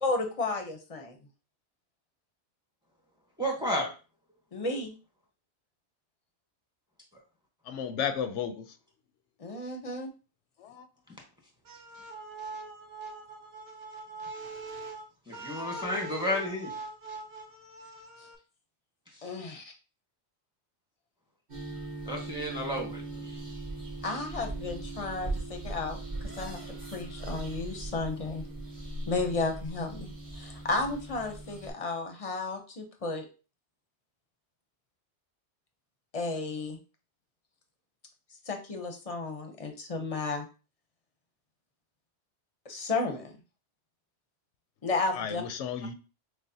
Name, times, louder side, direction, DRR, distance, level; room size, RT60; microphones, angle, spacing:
voice 1, 0.0-1.2 4.5-4.9 9.4-10.1 19.2-19.6 24.0-26.0 26.4-26.6 26.9-28.4 29.1-30.1 30.4-33.2 36.1-36.8 38.5-40.4 42.7-43.3 44.8-45.4, left 3 dB, 35° left, 0.7 m, -33 dB
voice 2, 3.4-3.9 15.3-16.7 22.1-23.0, equal, 5° right, 1.0 m, -31 dB
voice 3, 7.7-8.7 10.6-10.9 45.1-45.9, left 7 dB, 85° left, 0.9 m, -33 dB
sound 1, 11.7-18.4, right 2 dB, 60° right, 0.9 m, -42 dB
sound 2, 21.5-31.7, right 2 dB, 40° right, 1.4 m, -39 dB
6.2 x 2.1 x 2.8 m
omnidirectional pair, 1.2 m